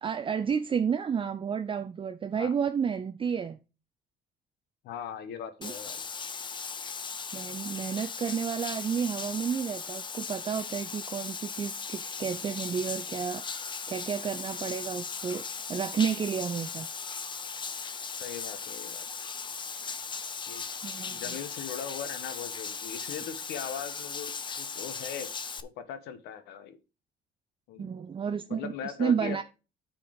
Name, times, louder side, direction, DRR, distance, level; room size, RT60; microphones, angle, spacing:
voice 1, 0.0-3.6 5.6-5.7 7.3-13.4 13.9-15.4 15.7-16.9 20.8-21.2 27.8-29.4, right 7 dB, 30° right, 0.6 m, -31 dB
voice 2, 4.8-6.0 18.2-19.0 20.5-20.7 21.1-25.3 25.6-26.8 27.7-27.9 28.5-29.4, left 8 dB, 85° left, 1.2 m, -39 dB
Bathtub (filling or washing), 5.6-25.6, left 5 dB, 30° left, 0.7 m, -38 dB
9.0 x 4.8 x 5.1 m
cardioid pair, 110°, 17 cm